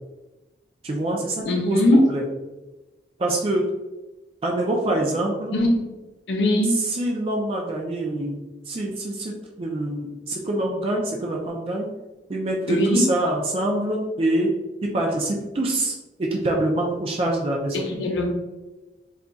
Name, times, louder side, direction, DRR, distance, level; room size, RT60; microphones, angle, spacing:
voice 1, 0.8-2.2 3.2-3.7 4.4-5.6 6.7-8.4 8.7-11.9 12.3-14.5 14.8-17.9, right 1 dB, 30° right, -1 dB, 0.3 m, -25 dB
voice 2, 1.5-2.1 5.5-5.8 6.3-6.7 12.7-13.0 17.7-18.3, left 1 dB, 80° left, 1 dB, 0.6 m, -20 dB
2.3 x 2.3 x 3.8 m, 1.1 s
head